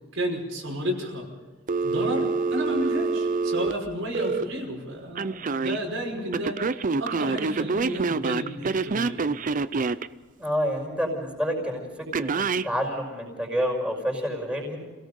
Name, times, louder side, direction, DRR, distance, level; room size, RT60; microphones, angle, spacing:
voice 1, 0.1-1.3 1.8-9.3, equal, 75° right, -1 dB, 5.7 m, -32 dB
Telephone, 1.7-4.4 5.2-5.8 6.3-10.1 12.1-12.7, right 4 dB, 40° right, 0.5 m, -26 dB
voice 2, 10.4-12.3 12.6-14.8, equal, 5° right, 1 dB, 5.7 m, -28 dB
28.5 x 17.5 x 5.4 m, 1.4 s
head